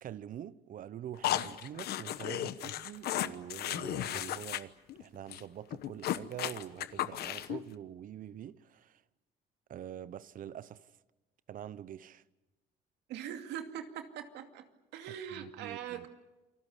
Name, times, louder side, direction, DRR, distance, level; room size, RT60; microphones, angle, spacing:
voice 1, 0.0-9.0 9.7-10.9 11.5-12.2 15.1-16.1, right 10 dB, 55° right, 0.9 m, -45 dB
sound 1, 1.2-4.6 4.9-5.0 5.3-5.4 5.7-7.6, left 12 dB, 70° left, 1.1 m, -35 dB
voice 2, 13.1-14.7 14.9-16.1, right 9 dB, 85° right, 2.5 m, -42 dB
28.5 x 20.5 x 8.3 m
cardioid pair, 110°, 17 cm